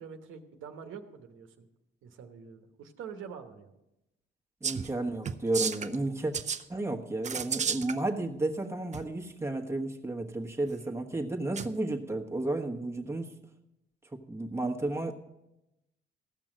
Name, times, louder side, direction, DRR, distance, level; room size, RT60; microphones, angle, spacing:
voice 1, 0.0-1.7 2.0-3.7, right 6 dB, 85° right, 6 dB, 1.1 m, -45 dB
voice 2, 4.6-6.3 6.7-13.3 14.3-15.1, right 2 dB, 15° right, 3 dB, 1.3 m, -32 dB
sound 1, 4.6-4.9 5.2-6.0 6.3-6.6 7.2-7.9 8.9-9.0 11.6-11.7, right 7 dB, 35° right, 0.6 m, -32 dB
15.0 x 6.1 x 7.6 m, 0.91 s
cardioid pair, 90°, 20 cm